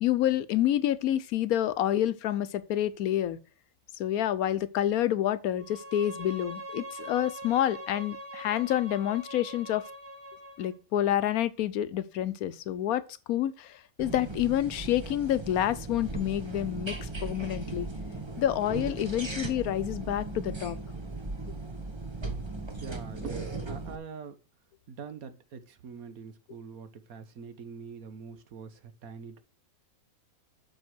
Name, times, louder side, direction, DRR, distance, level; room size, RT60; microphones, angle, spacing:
voice 1, 0.0-3.4 4.0-9.8 10.6-13.0 13.3-17.9 18.4-20.8, left 12 dB, 90° left, 1.2 m, -28 dB
Bowed string instrument, 5.6-10.7, right 1 dB, 35° right, 3.1 m, -43 dB
sound 1, 14.0-24.0, right 3 dB, 20° right, 1.0 m, -37 dB
voice 2, 22.5-24.4 24.9-29.4, right 5 dB, 80° right, 1.5 m, -44 dB
7.9 x 5.2 x 6.2 m
omnidirectional pair, 1.5 m